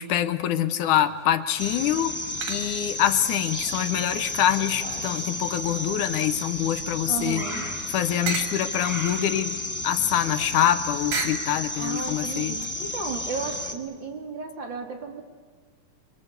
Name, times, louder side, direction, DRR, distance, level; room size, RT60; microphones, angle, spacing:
voice 1, 0.0-2.1 2.5-7.4 7.9-12.6, left 11 dB, 85° left, 11 dB, 2.4 m, -25 dB
sound 1, 0.9-1.5 2.4-3.0 3.5-6.2 6.6-11.5, right 5 dB, 80° right, 3.6 m, -38 dB
sound 2, 1.6-13.7, left 1 dB, 15° left, 0.5 m, -32 dB
voice 2, 7.1-7.7 11.8-15.2, right 5 dB, 40° right, 1 dB, 3.1 m, -34 dB
26.0 x 24.5 x 8.3 m, 1.5 s
omnidirectional pair, 3.6 m